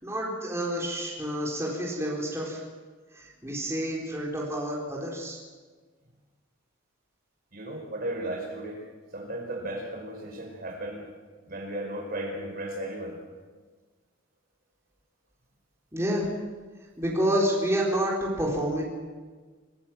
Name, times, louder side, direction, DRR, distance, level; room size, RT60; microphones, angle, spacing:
voice 1, 0.0-2.6 3.1-5.4 15.9-16.3 17.0-18.8, equal, 15° right, -4 dB, 4.3 m, -28 dB
voice 2, 7.5-8.8 9.1-11.1 11.5-13.2, right 1 dB, 45° right, 2 dB, 4.6 m, -35 dB
26.0 x 16.0 x 7.6 m, 1.4 s
head